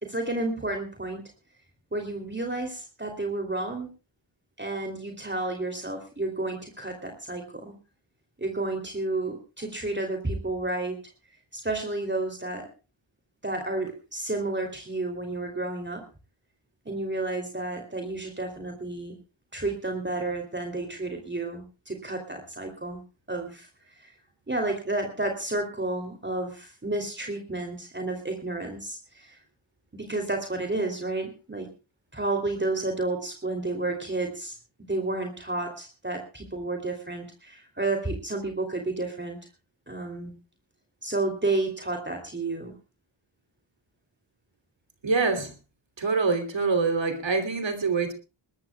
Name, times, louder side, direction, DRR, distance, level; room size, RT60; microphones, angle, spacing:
voice 1, 0.0-1.2 1.9-3.9 4.6-7.7 8.4-11.0 11.5-12.7 13.4-16.0 16.8-19.2 19.5-23.0 23.3-24.1 24.5-29.4 29.9-31.7 32.1-34.5 34.9-39.4 39.9-40.3 41.0-42.7, right 2 dB, 20° right, 3 dB, 3.0 m, -31 dB
voice 2, 45.0-45.5 46.0-48.1, right 4 dB, 60° right, 8 dB, 3.1 m, -25 dB
21.0 x 20.5 x 2.3 m, 0.30 s
wide cardioid pair, 75°, 49 cm